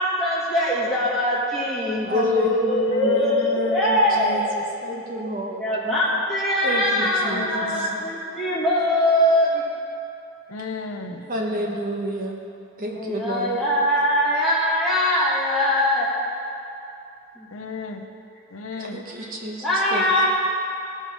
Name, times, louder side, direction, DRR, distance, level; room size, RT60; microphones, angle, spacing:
voice 1, 0.0-4.5 5.5-9.6 12.9-16.1 17.4-17.5 19.6-20.3, left 1 dB, ahead, -8 dB, 2.1 m, -22 dB
voice 2, 2.0-5.6 6.6-8.1 8.8-8.9 11.3-12.4 12.8-13.7 18.7-20.3, right 1 dB, 40° right, -1 dB, 1.1 m, -30 dB
voice 3, 2.9-4.5 7.3-8.0 10.5-11.2 17.5-18.1 18.5-19.0 20.2-20.3, left 3 dB, 75° left, 4 dB, 0.7 m, -33 dB
16.5 x 5.8 x 4.7 m, 2.7 s
head